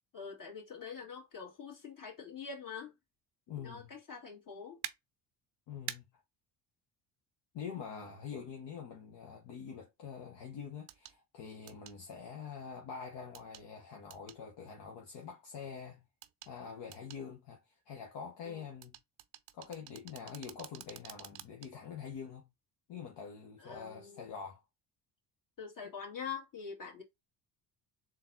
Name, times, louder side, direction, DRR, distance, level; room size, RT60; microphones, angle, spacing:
voice 1, 0.1-2.9 3.6-4.8 18.4-18.6 23.6-24.3 25.6-27.0, left 6 dB, 40° left, 2.1 m, -45 dB
voice 2, 3.5-3.9 5.7-6.0 7.5-16.0 16.4-18.9 19.5-22.5 22.9-24.6, left 6 dB, 60° left, 1.1 m, -45 dB
sound 1, 4.8-4.9 5.9-6.0 8.0-8.1 10.9-11.2 11.7-12.0 13.3-13.7 14.1-14.4 16.2-16.5 16.9-17.2 18.8-21.7 22.1-22.3, right 13 dB, 55° right, 0.6 m, -46 dB
3.8 x 2.5 x 3.9 m
hypercardioid pair, 60°, 49 cm